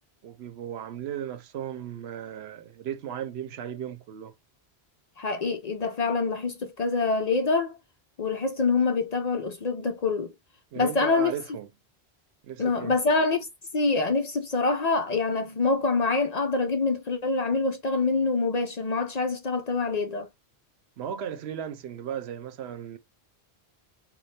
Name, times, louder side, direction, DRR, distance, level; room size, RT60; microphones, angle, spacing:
voice 1, 0.2-4.3 10.7-11.7 12.4-13.0 21.0-23.0, right 9 dB, 80° right, 0.9 m, -36 dB
voice 2, 5.2-7.7 8.2-10.3 10.8-11.3 12.6-13.5 13.7-20.3, left 3 dB, 50° left, 0.5 m, -25 dB
4.1 x 2.3 x 3.2 m
omnidirectional pair, 1.1 m